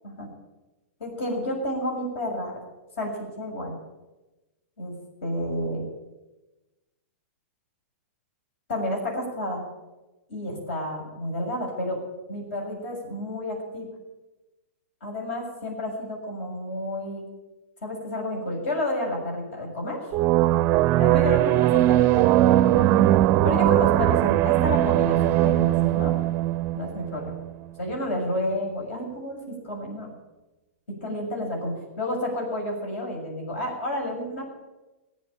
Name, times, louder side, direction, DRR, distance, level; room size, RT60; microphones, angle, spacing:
voice 1, 1.0-2.5 3.0-3.8 4.8-4.9 5.2-5.8 8.7-9.6 10.3-12.0 12.3-13.9 15.0-17.3 17.8-20.1 21.0-23.1 23.4-26.2 26.7-27.3 27.8-30.1 30.9-34.5, left 1 dB, 65° left, 0 dB, 6.8 m, -30 dB
sound 1, 20.1-27.5, right 15 dB, 35° right, 0.5 m, -20 dB
19.5 x 7.6 x 8.8 m, 1.1 s
hypercardioid pair, 135°, 7 cm